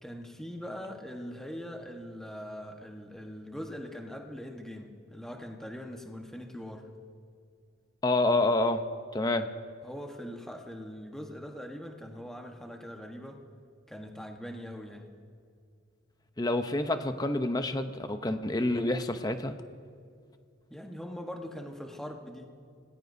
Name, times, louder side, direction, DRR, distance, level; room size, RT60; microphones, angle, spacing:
voice 1, 0.0-6.9 9.8-13.4 13.9-15.1 20.7-22.5, equal, ahead, 2 dB, 1.2 m, -42 dB
voice 2, 8.0-8.8 9.1-9.5 16.4-19.6, left 2 dB, 20° left, 8 dB, 0.7 m, -28 dB
26.0 x 19.5 x 2.7 m, 2.2 s
head